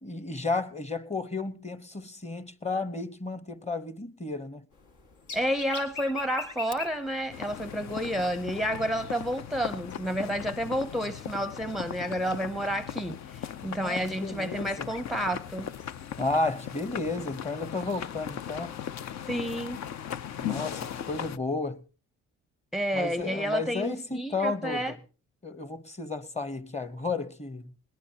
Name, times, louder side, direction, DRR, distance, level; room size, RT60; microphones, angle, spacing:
voice 1, 0.0-4.6 13.8-14.9 16.2-18.7 20.4-21.8 22.9-25.0 25.4-27.7, left 3 dB, 20° left, 1.1 m, -32 dB
sound 1, 4.7-17.1, left 4 dB, 80° left, 2.1 m, -47 dB
voice 2, 5.3-15.7 19.3-19.8 22.7-24.9, equal, ahead, 0.6 m, -30 dB
sound 2, 7.3-21.4, left 9 dB, 60° left, 0.7 m, -38 dB
21.0 x 18.0 x 2.8 m
cardioid pair, 90°, 30 cm